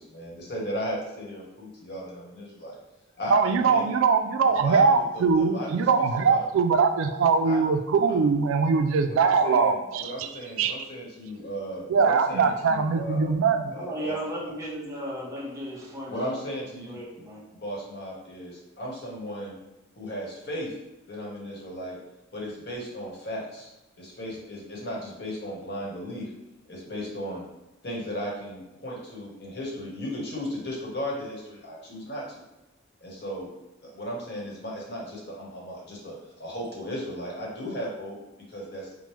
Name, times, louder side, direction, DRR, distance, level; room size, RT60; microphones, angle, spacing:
voice 1, 0.1-2.8 3.2-3.9 4.5-5.8 6.2-6.5 7.4-7.6 8.0-8.2 9.1-13.3 13.7-14.2 16.1-17.2 17.5-19.6 20.0-20.7 21.1-22.0 22.3-23.7 24.0-26.3 26.7-27.4 27.8-32.4 33.0-33.5 33.8-38.2 38.5-38.9, equal, 55° left, 1.0 m, -36 dB
voice 2, 3.3-10.3 10.6-10.7 11.9-13.8, right 5 dB, 85° right, 0.3 m, -22 dB
voice 3, 13.7-16.4 16.8-17.4, right 1 dB, 15° right, 0.7 m, -35 dB
4.8 x 2.0 x 3.0 m
head